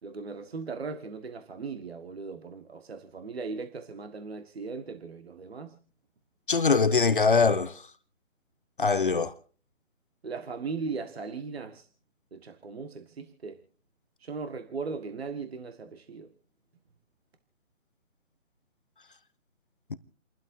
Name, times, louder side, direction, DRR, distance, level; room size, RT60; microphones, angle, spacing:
voice 1, 0.0-5.8 10.2-11.9 12.3-13.6 14.2-16.3, right 4 dB, 50° right, 1.6 m, -38 dB
voice 2, 6.5-7.7 8.8-9.3, left 4 dB, 40° left, 0.8 m, -22 dB
29.5 x 12.5 x 2.7 m
figure-of-eight pair, 155°, 40 cm